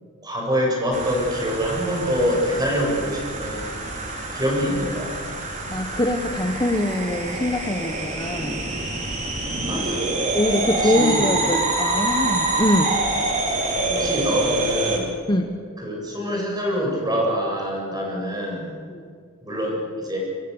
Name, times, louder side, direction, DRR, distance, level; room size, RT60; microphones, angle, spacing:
voice 1, 0.2-3.8 4.3-5.1 9.7-10.1 10.8-11.3 13.9-15.1 15.8-18.7 19.4-20.2, equal, 20° right, -1 dB, 7.9 m, -25 dB
sound 1, 0.9-15.0, right 2 dB, 35° right, 4.3 m, -26 dB
voice 2, 5.7-8.6 10.3-12.9 15.3-15.5 18.9-19.1, left 1 dB, 20° left, 5 dB, 1.2 m, -23 dB
25.0 x 25.0 x 7.2 m, 2.2 s
head